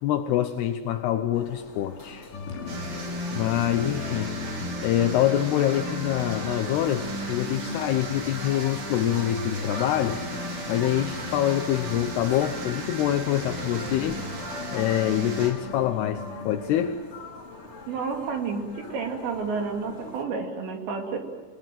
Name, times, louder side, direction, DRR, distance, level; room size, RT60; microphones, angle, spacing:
voice 1, 0.0-2.3 3.3-4.5 4.8-10.2 10.7-14.3 14.7-17.0, left 12 dB, 80° left, 7 dB, 2.4 m, -25 dB
sound 1, 1.3-20.2, left 2 dB, 30° left, 1.2 m, -44 dB
sound 2, 2.3-16.8, left 3 dB, 60° left, 6.6 m, -36 dB
sound 3, 2.7-15.5, right 3 dB, 45° right, 4.5 m, -38 dB
voice 2, 17.9-21.2, right 5 dB, 65° right, 3 dB, 4.6 m, -30 dB
29.5 x 20.5 x 7.6 m, 1.3 s
omnidirectional pair, 5.8 m